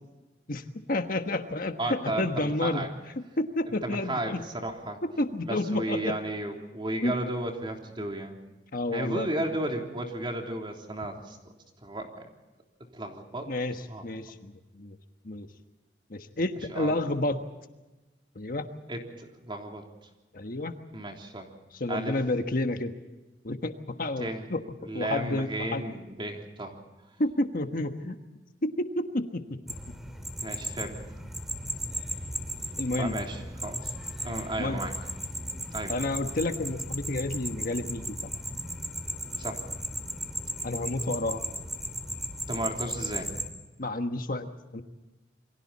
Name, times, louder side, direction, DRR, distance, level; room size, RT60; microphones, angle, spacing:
voice 1, 0.5-2.8 3.2-4.4 5.0-6.2 7.0-7.1 8.7-9.3 13.5-15.0 15.2-15.5 16.1-17.4 18.3-18.7 20.3-20.7 21.7-22.9 23.4-24.6 24.9-25.8 27.2-28.2 28.6-29.6 32.8-33.2 34.6-34.8 35.9-38.3 40.6-41.4 43.8-44.8, left 2 dB, 50° left, 7 dB, 1.4 m, -30 dB
voice 2, 1.8-2.9 3.8-5.0 5.4-8.3 8.9-11.4 11.8-12.2 12.9-13.5 13.9-14.0 16.7-17.0 18.9-19.8 20.9-21.5 21.9-22.2 24.2-24.5 24.8-26.8 30.4-31.0 33.0-33.9 34.2-34.9 35.7-35.9 39.4-39.6 42.5-43.3, right 1 dB, 30° right, 2 dB, 3.4 m, -33 dB
sound 1, 29.7-43.5, equal, ahead, 3.0 m, -36 dB
28.5 x 24.0 x 4.2 m, 1.1 s
head